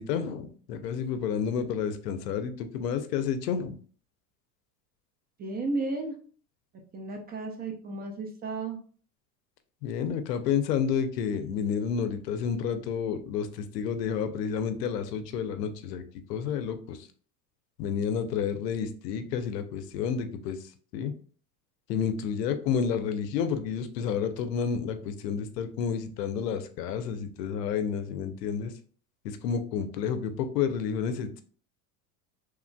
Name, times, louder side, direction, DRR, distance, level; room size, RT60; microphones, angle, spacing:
voice 1, 0.0-3.8 9.8-16.0 16.3-17.1 17.8-20.6 20.9-21.1 21.9-28.7 29.2-31.4, left 7 dB, 85° left, 9 dB, 0.6 m, -30 dB
voice 2, 5.4-6.1 6.9-8.8, right 3 dB, 20° right, 3 dB, 0.4 m, -33 dB
3.1 x 2.4 x 2.2 m, 0.43 s
hypercardioid pair, 95°, 47 cm